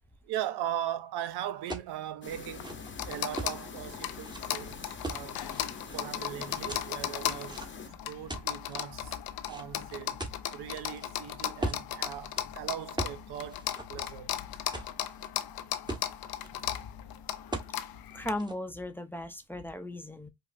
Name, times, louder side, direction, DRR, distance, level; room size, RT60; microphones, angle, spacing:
voice 1, 0.2-2.7 3.1-5.5 5.9-7.6 8.1-9.2 9.5-10.2 10.5-14.3, right 11 dB, 85° right, 0.6 m, -39 dB
sound 1, 1.7-1.9 2.4-3.6 4.2-4.4 5.0-6.0 6.7-7.9 8.3-8.7 9.5-11.1 11.6-11.9 12.3-12.4 13.0-13.2 13.5-14.3 14.7-15.3 15.6-15.7 15.9-16.5 17.5-17.7 18.1-18.6, right 2 dB, 10° right, 1.2 m, -38 dB
sound 2, 2.2-7.9, left 4 dB, 30° left, 0.9 m, -46 dB
sound 3, 2.3-18.3, left 11 dB, 70° left, 0.6 m, -37 dB
voice 2, 18.1-20.3, left 1 dB, 5° left, 0.7 m, -37 dB
5.3 x 2.0 x 2.5 m
cardioid pair, 65°, 38 cm